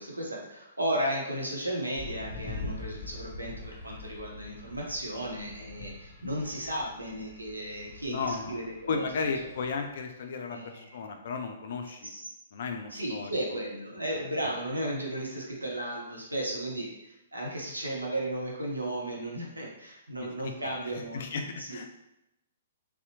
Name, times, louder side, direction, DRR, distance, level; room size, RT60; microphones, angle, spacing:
voice 1, 0.0-9.3 10.5-11.0 12.1-12.2 12.9-21.3 21.6-21.9, right 1 dB, 80° right, -2 dB, 0.6 m, -35 dB
sound 1, 2.0-10.0, left 2 dB, 20° left, 0.6 m, -44 dB
voice 2, 8.1-12.1 12.5-13.3 14.1-14.2 20.2-21.9, left 5 dB, 50° left, 5 dB, 0.3 m, -35 dB
2.7 x 2.0 x 2.6 m, 0.88 s
figure-of-eight pair, 115°, 0 cm